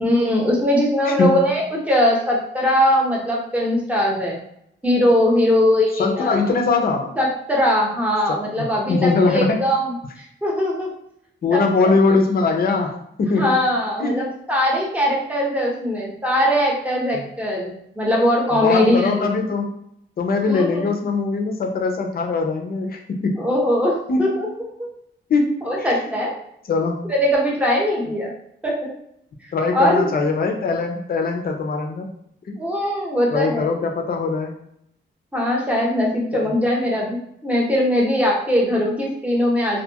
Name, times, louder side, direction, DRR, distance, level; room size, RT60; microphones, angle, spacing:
voice 1, 0.0-4.4 4.8-6.4 7.2-10.9 11.5-11.6 13.4-17.7 18.0-19.3 20.5-20.8 23.4-24.7 25.7-26.3 27.1-28.3 28.6-28.9 29.7-30.1 32.6-33.7 35.3-39.8, left 1 dB, 5° right, -3 dB, 0.7 m, -20 dB
voice 2, 1.1-1.5 5.9-7.1 8.3-9.7 11.4-13.5 14.0-14.2 17.1-17.2 18.5-19.7 20.2-23.4 24.1-24.4 25.3-26.1 26.7-27.1 29.5-32.1 32.5-32.6 33.3-34.6 36.3-36.5, left 3 dB, 50° left, 3 dB, 0.5 m, -21 dB
2.6 x 2.3 x 2.8 m, 0.75 s
wide cardioid pair, 115°, 20 cm